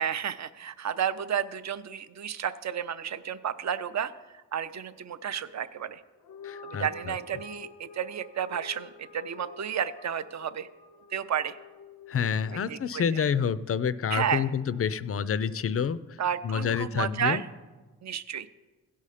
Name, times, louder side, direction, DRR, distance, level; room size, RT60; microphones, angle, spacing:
voice 1, 0.0-4.1 4.5-6.0 6.6-10.7 11.1-11.6 12.5-13.2 14.1-14.5 16.2-17.5 18.0-18.5, right 8 dB, 45° right, 13 dB, 0.5 m, -32 dB
sound 1, 6.2-12.8, left 4 dB, 90° left, 0.7 m, -48 dB
voice 2, 6.4-7.1 12.1-16.2 16.4-17.4, left 7 dB, 40° left, 15 dB, 0.4 m, -28 dB
16.5 x 5.6 x 4.9 m, 1.2 s
cardioid pair, 85°, 38 cm